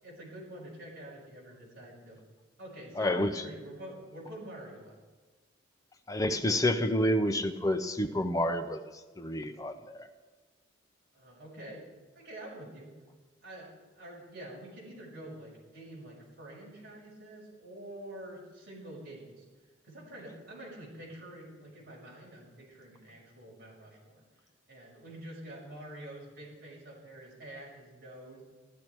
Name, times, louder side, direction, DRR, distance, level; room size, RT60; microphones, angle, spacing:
voice 1, 0.0-2.2 2.6-5.0 11.1-11.8 12.1-12.9 13.4-13.7 13.9-19.4 19.8-24.2 24.7-28.4, right 1 dB, 50° right, -4 dB, 5.8 m, -47 dB
voice 2, 3.0-3.3 6.1-8.8 9.2-10.1, left 1 dB, 15° left, 7 dB, 0.6 m, -29 dB
15.0 x 12.5 x 4.6 m, 1.3 s
head